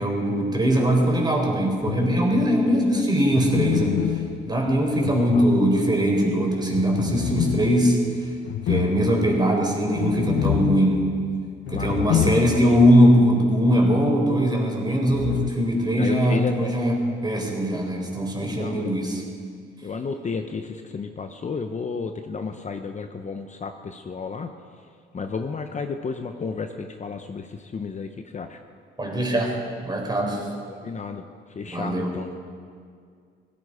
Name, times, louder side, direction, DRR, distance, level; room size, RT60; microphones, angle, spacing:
voice 1, 0.0-4.0 4.5-8.0 8.7-11.1 11.7-16.9 17.2-19.2 29.0-30.4 31.7-32.1, equal, 20° right, 0 dB, 4.1 m, -21 dB
sound 1, 1.8-2.5 3.3-6.1 6.7-12.9 13.2-13.3 15.1-15.5, left 12 dB, 75° left, 0.5 m, -28 dB
voice 2, 2.6-3.1 5.0-5.5 9.1-9.3 11.7-12.4 12.7-12.8 14.9-15.0 16.0-16.7 18.4-18.9 19.8-24.5 25.1-28.6 30.7-32.3, left 5 dB, 35° left, 6 dB, 0.9 m, -32 dB
16.5 x 16.0 x 5.0 m, 2.2 s
cardioid pair, 90°, 20 cm